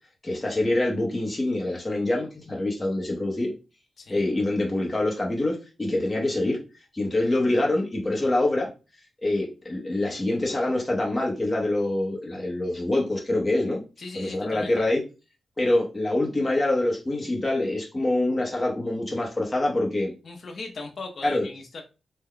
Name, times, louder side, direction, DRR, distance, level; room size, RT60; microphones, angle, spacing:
voice 1, 0.2-3.5 4.1-6.6 6.9-8.7 9.2-13.8 14.1-15.0 15.6-20.1 21.2-21.4, left 1 dB, 15° left, -2 dB, 0.8 m, -25 dB
voice 2, 14.0-14.7 20.2-21.8, left 3 dB, 55° left, 2 dB, 0.6 m, -38 dB
3.3 x 2.2 x 3.7 m, 0.31 s
wide cardioid pair, 120°, 0 cm